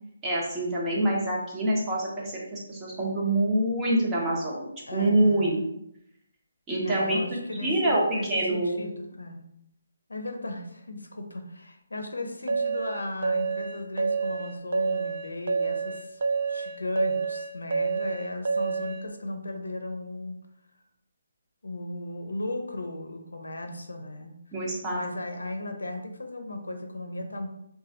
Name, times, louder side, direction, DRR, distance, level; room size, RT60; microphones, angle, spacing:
voice 1, 0.2-5.6 6.7-7.2 7.6-8.0 8.3-8.8 24.5-25.0, right 1 dB, 15° right, -4 dB, 0.8 m, -26 dB
voice 2, 4.9-5.6 6.8-9.4 10.1-16.2 16.5-20.4 21.6-24.4 24.9-27.5, left 1 dB, 85° left, 5 dB, 0.5 m, -36 dB
sound 1, 12.5-19.0, right 5 dB, 60° right, 0.3 m, -28 dB
3.0 x 2.2 x 2.8 m, 0.78 s
figure-of-eight pair, 150°, 0 cm